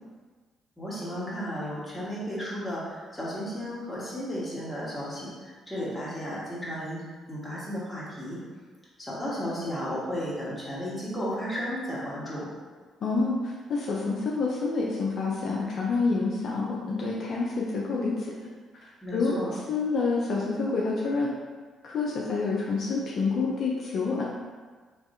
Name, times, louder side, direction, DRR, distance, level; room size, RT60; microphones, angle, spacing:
voice 1, 0.8-7.0 7.3-8.4 9.0-12.5 19.0-19.5, equal, 10° left, -7 dB, 1.5 m, -34 dB
voice 2, 13.0-18.1 18.8-19.4 19.7-21.3 21.8-24.2, left 4 dB, 60° left, -4 dB, 0.5 m, -28 dB
3.4 x 3.1 x 2.6 m, 1.4 s
supercardioid pair, 55°, 0 cm